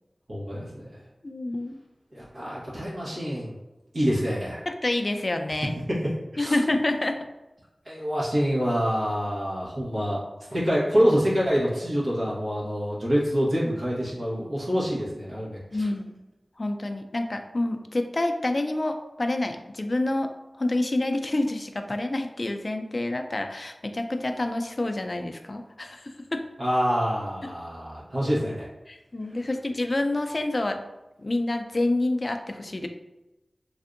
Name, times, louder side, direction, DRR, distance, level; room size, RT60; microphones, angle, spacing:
voice 1, 0.3-1.0 2.1-3.6 3.9-4.6 6.3-6.6 7.8-10.2 10.5-15.9 26.6-28.7, equal, 70° right, -7 dB, 1.0 m, -26 dB
voice 2, 1.2-1.8 4.7-5.7 6.4-7.2 15.7-16.2 16.6-20.3 20.6-26.4 28.9-30.8 31.2-32.9, left 2 dB, 45° left, 6 dB, 0.3 m, -28 dB
3.3 x 2.6 x 2.5 m, 1.0 s
wide cardioid pair, 65°, 0 cm